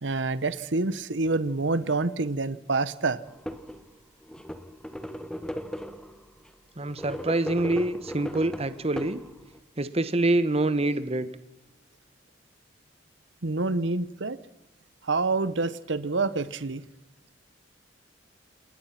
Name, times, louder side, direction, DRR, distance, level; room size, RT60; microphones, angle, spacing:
voice 1, 0.0-3.2 13.4-14.4 15.0-16.8, right 3 dB, 80° right, 1.0 m, -27 dB
sound 1, 3.2-3.8 4.2-6.2 6.8-9.6, equal, 5° left, 1.5 m, -37 dB
voice 2, 6.8-9.2 9.8-11.3, right 2 dB, 35° right, 1.1 m, -26 dB
28.5 x 18.5 x 5.9 m
head